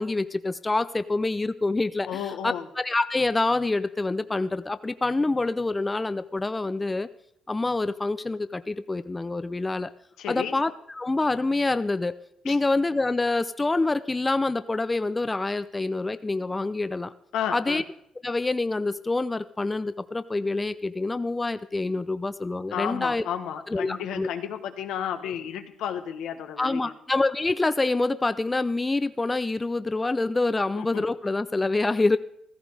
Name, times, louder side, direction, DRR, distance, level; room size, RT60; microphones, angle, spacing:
voice 1, 0.0-7.1 7.5-9.9 10.3-12.2 12.4-17.1 17.5-17.8 18.2-23.2 23.7-24.3 26.6-32.2, left 2 dB, 20° left, 13 dB, 0.5 m, -26 dB
voice 2, 2.1-2.7 10.2-10.6 12.4-12.6 17.3-17.8 22.7-26.9 30.7-31.0, left 9 dB, 85° left, 7 dB, 1.5 m, -32 dB
15.0 x 14.0 x 4.9 m, 0.72 s
cardioid pair, 90°, 0 cm